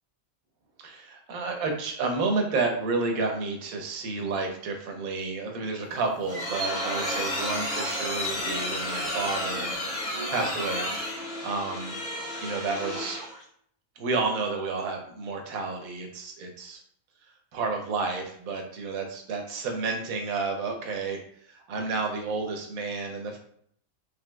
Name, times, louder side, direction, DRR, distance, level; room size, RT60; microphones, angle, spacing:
voice 1, 0.8-9.7 10.3-10.9 11.4-12.0 12.4-13.2 14.0-16.8 17.5-21.2 21.5-23.4, right 3 dB, 75° right, 3 dB, 1.2 m, -30 dB
sound 1, 5.9-13.4, left 1 dB, 55° left, 1.9 m, -32 dB
5.1 x 3.3 x 2.3 m, 0.64 s
omnidirectional pair, 1.5 m